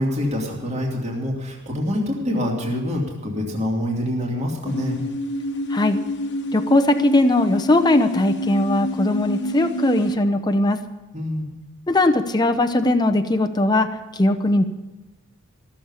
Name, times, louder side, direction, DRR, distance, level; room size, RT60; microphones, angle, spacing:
voice 1, 0.0-5.0 11.1-11.5, left 1 dB, 30° right, -2 dB, 2.7 m, -25 dB
sound 1, 4.7-10.2, left 1 dB, 55° left, 1.2 m, -28 dB
voice 2, 6.5-10.8 11.9-14.6, left 2 dB, 20° left, 5 dB, 0.7 m, -19 dB
15.5 x 7.3 x 9.6 m, 1.2 s
head